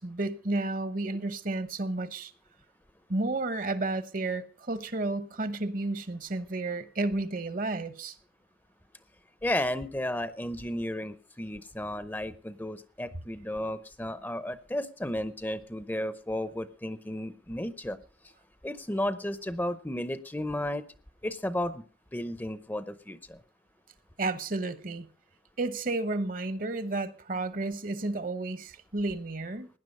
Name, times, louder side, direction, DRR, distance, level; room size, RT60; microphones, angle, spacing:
voice 1, 0.0-2.3 3.1-8.1 24.2-25.1 25.6-29.7, right 2 dB, 50° right, 1.0 m, -32 dB
voice 2, 9.4-18.0 18.6-20.8 21.2-21.8 22.1-23.4, left 1 dB, 10° left, 0.7 m, -33 dB
17.5 x 10.5 x 5.4 m
head